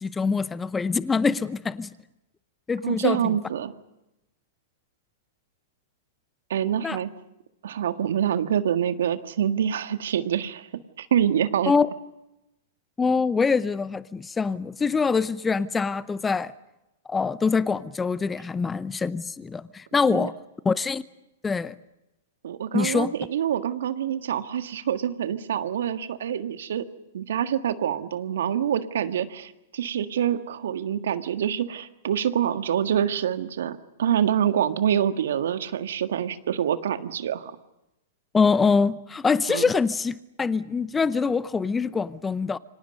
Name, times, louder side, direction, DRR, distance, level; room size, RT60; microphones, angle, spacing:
voice 1, 0.0-1.9 2.7-3.2 6.8-7.0 11.7-11.9 13.0-16.5 17.1-20.3 20.6-21.0 21.4-21.7 22.7-23.1 38.3-42.6, left 5 dB, 15° left, 0.8 m, -24 dB
voice 2, 2.8-3.7 6.5-7.1 7.6-10.7 11.0-11.7 20.1-20.3 22.4-26.8 27.1-37.5 39.5-39.6, right 9 dB, 70° right, 1.6 m, -26 dB
29.0 x 25.5 x 5.4 m
hypercardioid pair, 110°, 0 cm